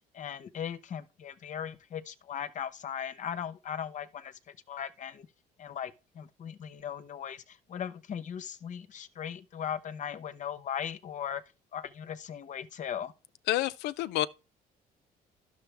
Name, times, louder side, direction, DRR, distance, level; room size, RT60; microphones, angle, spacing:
voice 1, 0.1-5.3 5.6-11.4 11.7-13.1, left 8 dB, 45° left, 0.8 m, -38 dB
voice 2, 13.5-14.3, left 14 dB, 85° left, 0.5 m, -28 dB
11.0 x 6.6 x 3.3 m
cardioid pair, 110°, 17 cm